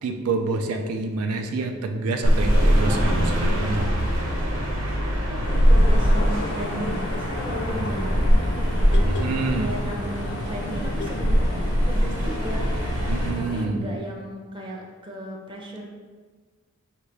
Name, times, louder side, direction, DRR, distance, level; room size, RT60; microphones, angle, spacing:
voice 1, 0.0-3.9 9.0-9.8 13.1-13.8, right 3 dB, 90° right, 4 dB, 0.4 m, -27 dB
sound 1, 2.2-13.3, equal, 65° right, 0.9 m, -22 dB
sound 2, 5.4-13.7, left 2 dB, 50° left, 0.4 m, -34 dB
voice 2, 5.5-8.9 9.3-13.0 13.4-15.8, right 1 dB, 20° right, -1 dB, 0.6 m, -35 dB
4.5 x 2.9 x 3.3 m, 1.4 s
head